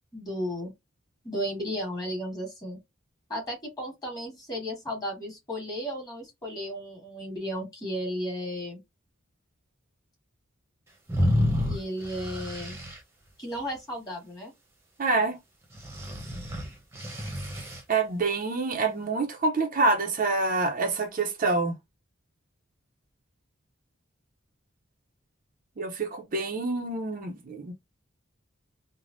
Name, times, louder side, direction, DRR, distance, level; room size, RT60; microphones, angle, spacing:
voice 1, 0.1-0.7 1.2-2.8 3.3-8.8 11.7-12.8 13.4-14.5, equal, 20° left, 1.4 m, -34 dB
sound 1, 11.1-13.0 15.8-17.8, left 1 dB, 15° right, 0.8 m, -29 dB
voice 2, 15.0-15.4 17.9-21.7 25.8-27.7, right 3 dB, 40° right, 0.5 m, -26 dB
3.3 x 2.0 x 2.5 m
head